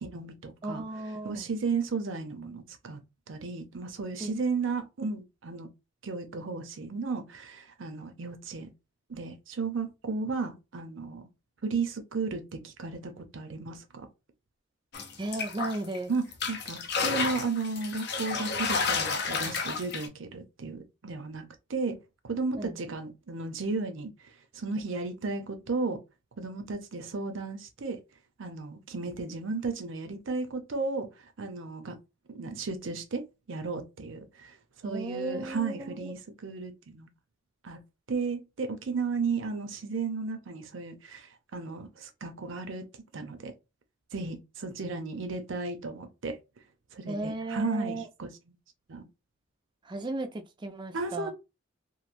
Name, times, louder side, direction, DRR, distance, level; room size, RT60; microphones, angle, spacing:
voice 1, 0.0-0.8 1.2-3.0 3.3-5.7 6.0-8.7 9.1-11.3 11.6-14.1 16.1-22.0 22.2-24.1 24.5-26.0 26.4-28.0 28.4-31.1 31.4-32.0 32.3-34.6 34.8-37.1 37.6-37.8 38.1-42.9 43.1-43.5 44.1-46.4 46.9-48.6 48.9-49.0 50.9-51.3, right 4 dB, 65° right, 0.6 m, -34 dB
voice 2, 0.6-1.5 4.2-4.3 15.2-16.1 22.6-22.8 34.8-36.1 47.1-48.1 49.8-51.3, right 2 dB, 20° right, 0.4 m, -35 dB
sound 1, 14.9-16.0 16.3-20.1, left 5 dB, 55° left, 0.6 m, -31 dB
3.0 x 2.6 x 2.5 m
head